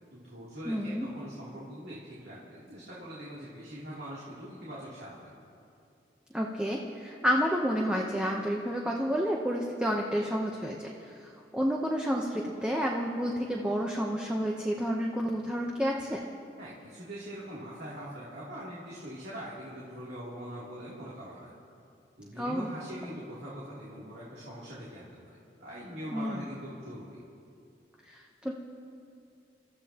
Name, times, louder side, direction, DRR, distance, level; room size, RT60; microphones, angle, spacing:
voice 1, 0.1-5.3 16.6-21.5 22.2-27.2, equal, 65° right, -8 dB, 2.9 m, -43 dB
voice 2, 0.7-1.1 6.3-16.2 22.4-22.7 26.1-26.5 28.1-28.5, equal, 5° right, -1 dB, 0.8 m, -30 dB
29.0 x 14.0 x 2.9 m, 2.5 s
head